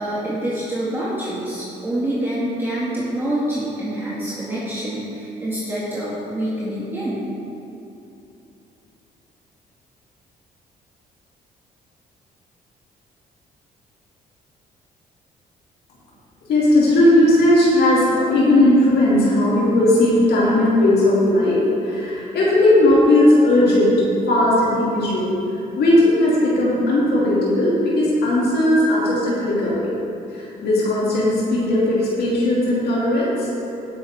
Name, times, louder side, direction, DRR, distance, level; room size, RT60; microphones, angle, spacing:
voice 1, 0.0-7.2, right 1 dB, 15° right, -9 dB, 2.2 m, -26 dB
voice 2, 16.5-24.0 24.3-25.3 25.8-29.9 30.3-33.5, left 1 dB, 70° left, -7 dB, 2.5 m, -17 dB
16.5 x 6.3 x 3.6 m, 2.8 s
supercardioid pair, 65°, 17 cm